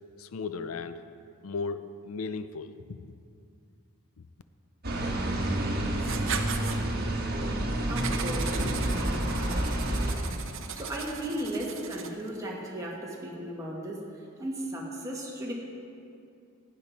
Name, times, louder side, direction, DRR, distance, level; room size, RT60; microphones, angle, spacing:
voice 1, 0.2-1.0 1.4-3.0, left 4 dB, 85° left, 12 dB, 0.5 m, -36 dB
sound 1, 4.8-10.1, right 1 dB, 50° right, 1.5 m, -29 dB
Writing, 6.0-6.8 8.0-12.3, right 6 dB, 65° right, 0.8 m, -38 dB
voice 2, 7.5-8.6 10.7-14.0 14.4-15.5, right 1 dB, 15° right, -4 dB, 1.8 m, -35 dB
15.5 x 9.5 x 4.2 m, 2.5 s
head